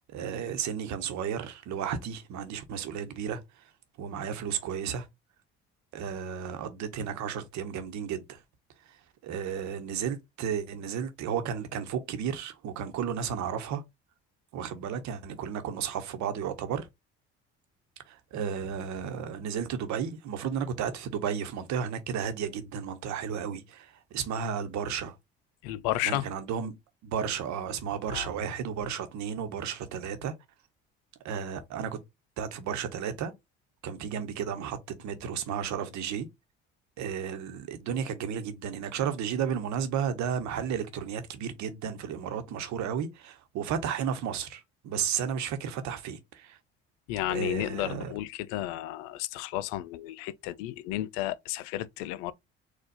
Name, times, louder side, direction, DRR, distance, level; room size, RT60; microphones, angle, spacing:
voice 1, 0.0-3.4 4.0-5.1 5.9-8.4 9.2-13.8 14.5-16.9 18.1-25.2 26.0-26.7 27.0-30.3 31.2-32.0 32.4-33.3 33.8-36.3 37.0-46.6 47.3-48.1, right 8 dB, 65° right, 1.0 m, -33 dB
voice 2, 25.6-26.3 28.1-28.3 47.1-52.3, left 15 dB, 75° left, 0.5 m, -32 dB
4.3 x 2.4 x 4.0 m
hypercardioid pair, 55°, 31 cm